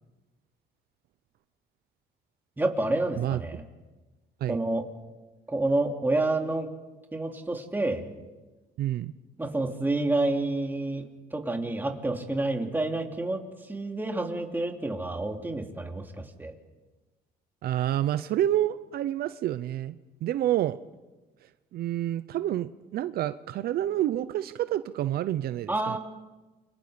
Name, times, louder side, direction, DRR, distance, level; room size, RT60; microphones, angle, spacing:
voice 1, 2.6-3.6 4.5-4.8 5.5-6.7 7.1-8.0 9.4-16.5 25.7-26.0, right 2 dB, 10° right, 2 dB, 3.1 m, -29 dB
voice 2, 8.8-9.1 17.6-20.0 20.2-20.8 21.4-26.0, right 12 dB, 65° right, 13 dB, 0.7 m, -28 dB
29.0 x 25.0 x 5.2 m, 1.2 s
cardioid pair, 110°, 17 cm